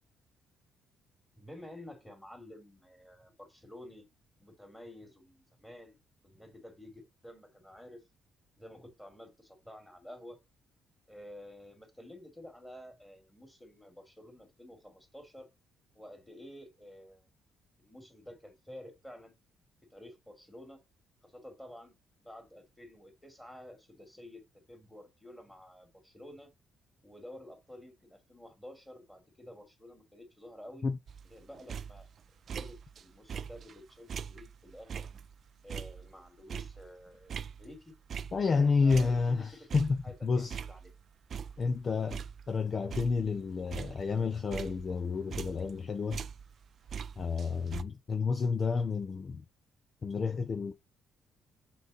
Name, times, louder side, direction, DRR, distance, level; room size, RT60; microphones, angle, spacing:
voice 1, 1.4-4.1 4.4-6.0 6.2-8.0 8.6-10.4 11.1-15.5 15.9-17.3 17.8-19.3 19.9-20.8 21.2-21.9 22.2-26.5 27.0-30.8 31.2-32.1 32.5-35.1 35.6-37.9 38.8-40.9, left 1 dB, 5° left, 2.4 m, -51 dB
sound 1, 31.1-33.0 33.3-38.6 38.9-41.0 41.3-41.8 42.1-45.8 46.1-47.8, right 7 dB, 50° right, 0.3 m, -42 dB
voice 2, 38.3-40.6 41.6-46.2 47.2-49.4 50.0-50.7, left 4 dB, 40° left, 0.5 m, -30 dB
6.0 x 4.0 x 4.1 m
cardioid pair, 105°, 0 cm